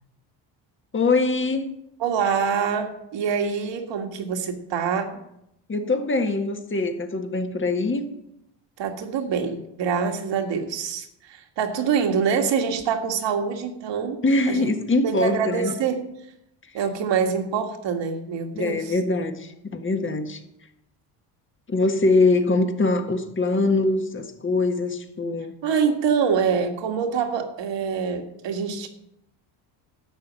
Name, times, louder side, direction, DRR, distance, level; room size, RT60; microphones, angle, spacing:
voice 1, 0.9-1.7 5.7-8.0 14.2-15.8 18.5-20.4 21.7-25.5, left 3 dB, 25° left, 1.6 m, -23 dB
voice 2, 2.0-5.2 8.8-14.7 15.0-16.0 16.7-18.9 25.6-28.9, right 6 dB, 65° right, 2.0 m, -25 dB
12.5 x 6.6 x 7.6 m
cardioid pair, 100°, 48 cm